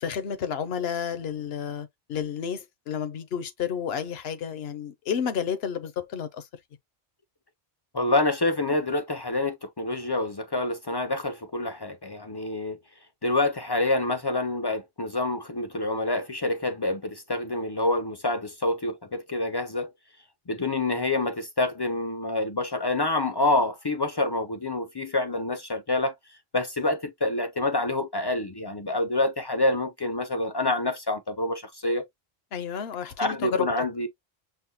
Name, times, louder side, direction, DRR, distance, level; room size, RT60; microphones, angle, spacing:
voice 1, 0.0-6.5 32.5-33.9, left 7 dB, 80° left, 1.0 m, -31 dB
voice 2, 7.9-12.8 13.2-19.9 20.5-26.1 26.5-32.1 33.2-34.1, left 2 dB, 40° left, 0.3 m, -27 dB
5.7 x 2.1 x 2.8 m
omnidirectional pair, 1.0 m